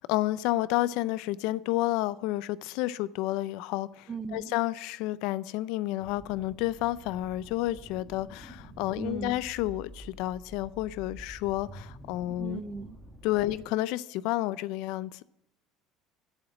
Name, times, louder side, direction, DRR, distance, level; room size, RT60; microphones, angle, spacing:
voice 1, 0.1-12.6 13.2-15.2, left 16 dB, 70° left, 0.4 m, -30 dB
voice 2, 4.1-4.6 8.9-9.4 12.4-13.0, right 4 dB, 20° right, 0.5 m, -37 dB
sound 1, 6.0-13.6, equal, 5° left, 1.7 m, -48 dB
7.9 x 7.2 x 8.3 m
cardioid pair, 150°, 0 cm